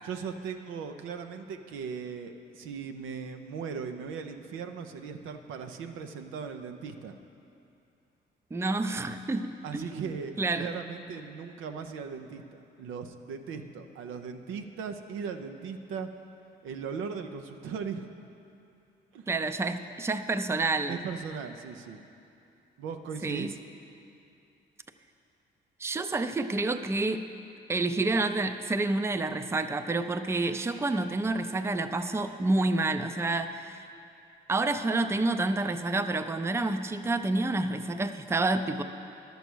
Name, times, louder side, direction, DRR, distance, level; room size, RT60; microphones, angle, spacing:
voice 1, 0.0-7.1 9.6-16.1 16.6-18.1 19.1-19.2 20.9-22.0 22.8-23.6, right 6 dB, 90° right, 7 dB, 0.7 m, -38 dB
voice 2, 8.5-10.0 10.4-10.7 19.3-21.0 23.2-23.5 25.8-27.3 27.7-33.8 34.5-38.8, right 2 dB, 15° right, 9 dB, 0.4 m, -29 dB
11.5 x 7.0 x 6.1 m, 2.7 s
cardioid pair, 90°, 20 cm